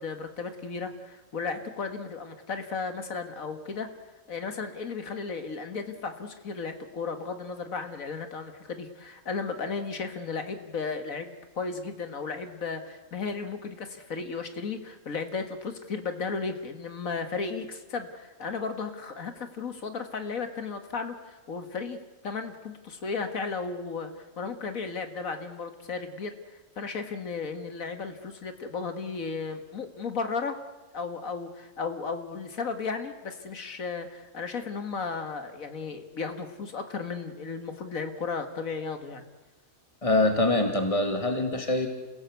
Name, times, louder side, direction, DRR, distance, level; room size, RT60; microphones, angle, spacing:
voice 1, 0.0-3.9 4.3-11.3 11.6-22.0 22.2-26.3 26.8-30.6 30.9-39.3, left 4 dB, 70° left, 7 dB, 2.0 m, -34 dB
voice 2, 40.0-41.9, left 2 dB, 20° left, 4 dB, 2.5 m, -24 dB
28.0 x 16.5 x 8.2 m, 1.2 s
omnidirectional pair, 1.5 m